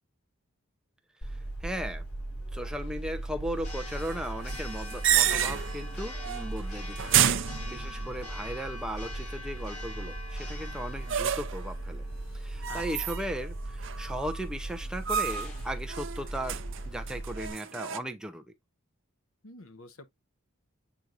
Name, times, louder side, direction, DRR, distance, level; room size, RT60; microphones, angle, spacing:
Church bell, 1.2-17.5, right 1 dB, 85° left, 5.1 m, -38 dB
voice 1, 1.2-2.0 2.5-7.4 7.6-12.1 12.3-16.6 16.9-18.4, equal, 5° right, 0.7 m, -37 dB
sound 1, 4.5-5.9 6.2-6.6 7.0-8.2 11.1-11.7 12.6-13.5 13.8-14.4 15.1-15.6 15.9-18.0, right 10 dB, 60° right, 0.7 m, -29 dB
voice 2, 12.7-13.1 19.4-20.1, left 3 dB, 70° left, 1.1 m, -47 dB
8.5 x 4.6 x 2.6 m
head